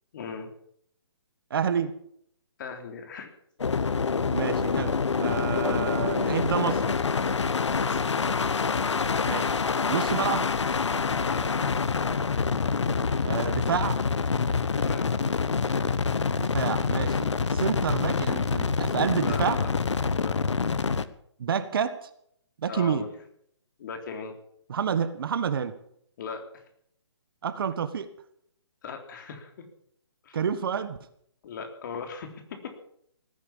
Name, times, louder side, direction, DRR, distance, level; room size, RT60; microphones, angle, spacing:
voice 1, 0.1-0.5 2.6-3.3 7.7-8.0 11.2-11.4 14.7-15.3 19.1-19.7 20.1-20.3 22.7-23.1 23.8-24.3 26.2-26.4 28.8-29.7 30.2-30.4 31.4-32.7, left 5 dB, 45° left, 6 dB, 3.5 m, -38 dB
voice 2, 1.5-1.9 4.3-7.0 9.3-9.5 9.9-10.5 13.2-14.0 16.4-19.6 21.4-22.1 22.6-23.1 24.7-25.7 27.4-28.1 30.3-31.0, right 7 dB, 55° right, 11 dB, 1.6 m, -29 dB
sound 1, 3.6-21.1, left 5 dB, 85° left, 1.1 m, -26 dB
18.0 x 10.5 x 7.2 m, 0.68 s
hypercardioid pair, 155°, 15 cm